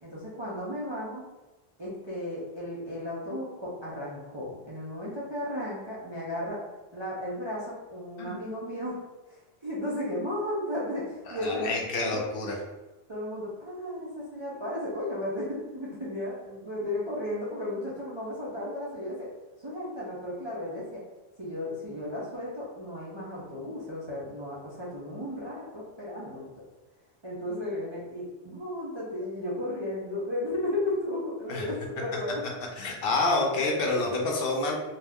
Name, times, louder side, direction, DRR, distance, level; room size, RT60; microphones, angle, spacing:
voice 1, 0.0-1.2 1.8-6.6 6.9-9.0 9.3-11.7 12.0-12.2 13.1-19.3 19.6-21.0 21.4-26.5 27.2-32.4, left 1 dB, 40° right, -7 dB, 0.4 m, -34 dB
voice 2, 11.3-12.5 31.5-31.7 32.8-34.7, left 2 dB, 65° left, 0 dB, 0.7 m, -28 dB
2.4 x 2.1 x 3.4 m, 1.1 s
omnidirectional pair, 1.1 m